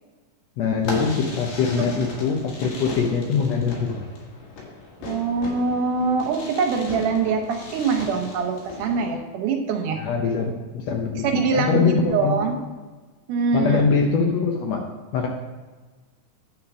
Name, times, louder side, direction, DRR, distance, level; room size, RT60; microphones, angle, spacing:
voice 1, 0.6-4.0 10.0-12.5 13.5-14.8 15.1-15.3, left 5 dB, 70° left, 2 dB, 1.7 m, -23 dB
Fireworks, 0.8-9.2, left 3 dB, 90° left, 3.3 m, -37 dB
voice 2, 5.0-10.0 11.2-12.6 13.3-14.0, right 4 dB, 80° right, 3 dB, 2.5 m, -24 dB
9.4 x 4.5 x 6.0 m, 1.3 s
omnidirectional pair, 3.6 m